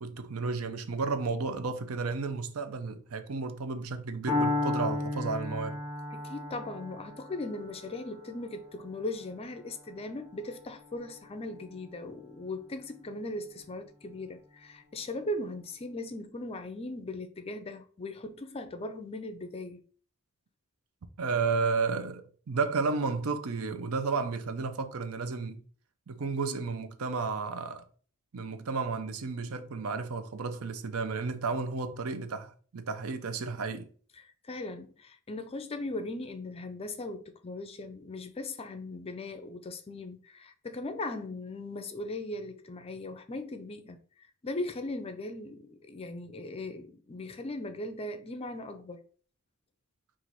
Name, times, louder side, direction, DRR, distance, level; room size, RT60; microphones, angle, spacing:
voice 1, 0.0-5.8 21.2-25.6 26.1-27.8 28.3-33.9, right 4 dB, 75° right, 0.6 m, -32 dB
Piano, 4.3-12.2, left 2 dB, 10° right, 2.2 m, -35 dB
voice 2, 6.1-19.8 34.2-44.0 44.4-49.0, left 2 dB, 25° left, 0.5 m, -39 dB
4.5 x 2.5 x 4.0 m
head